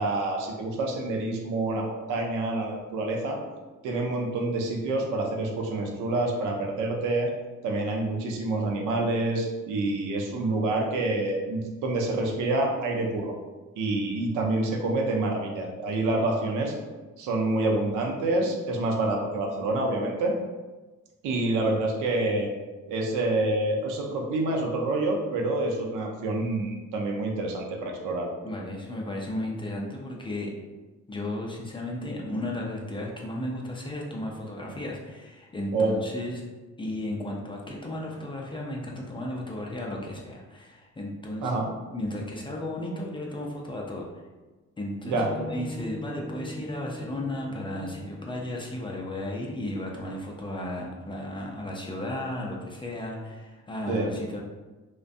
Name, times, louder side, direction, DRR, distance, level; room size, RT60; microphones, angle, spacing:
voice 1, 0.0-3.4 3.8-7.3 7.6-13.3 13.8-16.7 17.2-20.3 21.2-22.5 22.9-28.3 35.7-36.0 41.4-41.7 45.0-45.3 53.9-54.1, right 2 dB, 85° right, 0 dB, 0.6 m, -27 dB
voice 2, 28.4-30.5 31.1-36.4 36.8-41.5 41.9-44.1 44.8-54.4, left 1 dB, 15° left, -1 dB, 0.4 m, -34 dB
sound 1, 45.1-48.9, left 1 dB, 40° right, 0.9 m, -40 dB
2.4 x 2.2 x 2.5 m, 1.2 s
cardioid pair, 90°, 30 cm